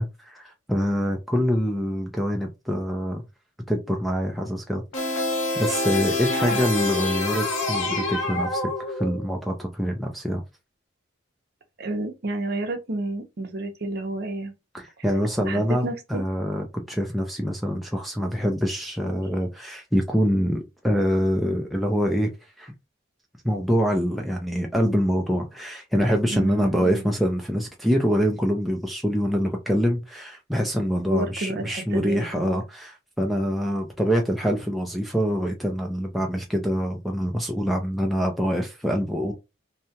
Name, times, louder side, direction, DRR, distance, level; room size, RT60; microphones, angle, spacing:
voice 1, 0.0-3.2 3.7-4.8 5.5-10.4 14.7-22.3 22.6-22.7 23.4-39.3, equal, ahead, 0.3 m, -25 dB
sound 1, 4.9-9.3, left 2 dB, 70° left, 0.8 m, -26 dB
voice 2, 6.2-6.6 11.8-14.5 15.0-15.2 15.4-16.2 26.3-27.1 31.1-32.6, right 2 dB, 50° right, 0.6 m, -31 dB
2.7 x 2.2 x 2.8 m
head